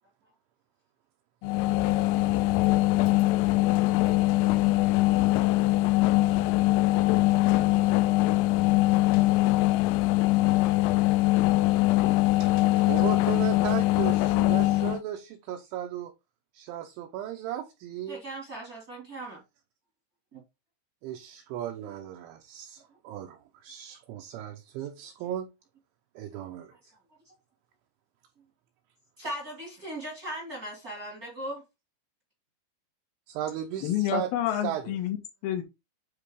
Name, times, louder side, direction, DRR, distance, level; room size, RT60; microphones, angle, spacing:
sound 1, 1.4-15.0, left 18 dB, 85° left, 3.2 m, -22 dB
voice 1, 12.4-16.1 16.5-18.2 21.0-25.5 26.2-26.8 33.4-34.3 34.6-35.0, right 11 dB, 80° right, 2.9 m, -36 dB
voice 2, 18.1-19.4 20.3-20.4 27.2-27.3 29.2-31.6, right 1 dB, 40° right, 1.3 m, -38 dB
voice 3, 33.8-35.6, left 11 dB, 65° left, 2.4 m, -29 dB
9.9 x 3.8 x 3.7 m
omnidirectional pair, 5.9 m